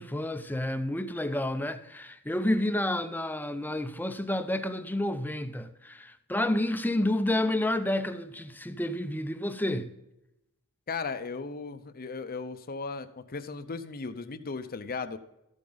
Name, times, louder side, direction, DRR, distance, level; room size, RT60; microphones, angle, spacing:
voice 1, 0.0-9.9, left 1 dB, 10° left, 0.6 m, -30 dB
voice 2, 10.9-15.2, left 4 dB, 40° left, 0.7 m, -36 dB
13.0 x 8.6 x 4.0 m
head